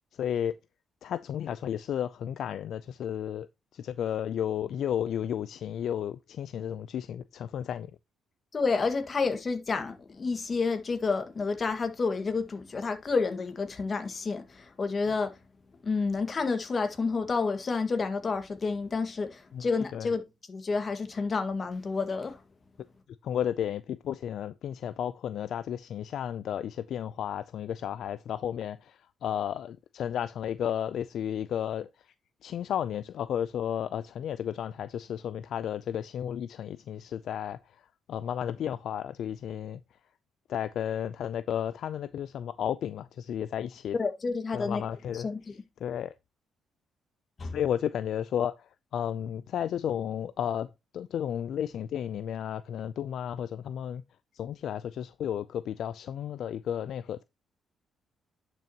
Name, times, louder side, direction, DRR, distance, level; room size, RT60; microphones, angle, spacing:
voice 1, 0.2-0.5 1.0-3.5 3.7-7.9 19.5-20.1 23.2-31.9 32.4-37.8 38.1-39.8 40.5-44.0 44.5-45.3 45.8-46.1 47.5-50.7 50.9-54.0 54.3-57.2, left 9 dB, 70° left, 0.4 m, -33 dB
voice 2, 8.5-15.3 15.8-20.2 20.5-22.4 44.0-44.8 45.2-45.4 47.4-47.5, left 4 dB, 40° left, 1.8 m, -29 dB
10.5 x 6.0 x 2.9 m
cardioid pair, 90°, 0 cm